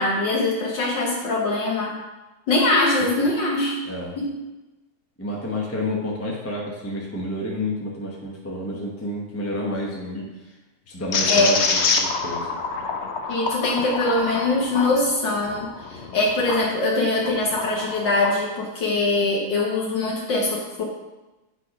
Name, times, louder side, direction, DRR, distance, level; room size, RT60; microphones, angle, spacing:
voice 1, 0.0-2.0 2.5-3.8 4.2-4.3 10.1-10.3 11.3-11.5 13.3-20.8, left 2 dB, 65° left, -3 dB, 1.8 m, -22 dB
voice 2, 3.8-4.2 5.2-10.5 10.9-12.5, left 1 dB, 10° left, -3 dB, 0.6 m, -30 dB
sound 1, 11.1-16.7 17.2-18.4, left 4 dB, 90° left, 0.6 m, -26 dB
8.1 x 4.2 x 5.1 m, 1.1 s
omnidirectional pair, 2.2 m